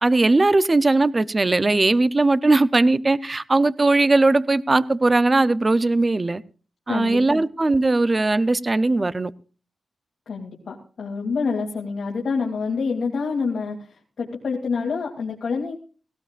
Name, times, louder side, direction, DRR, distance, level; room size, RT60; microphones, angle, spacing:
voice 1, 0.0-6.4 6.9-9.3, right 2 dB, 25° right, 0.6 m, -19 dB
voice 2, 10.3-13.9 14.2-15.7, left 4 dB, 70° left, 2.8 m, -27 dB
18.0 x 17.0 x 2.5 m
wide cardioid pair, 140°, 0 cm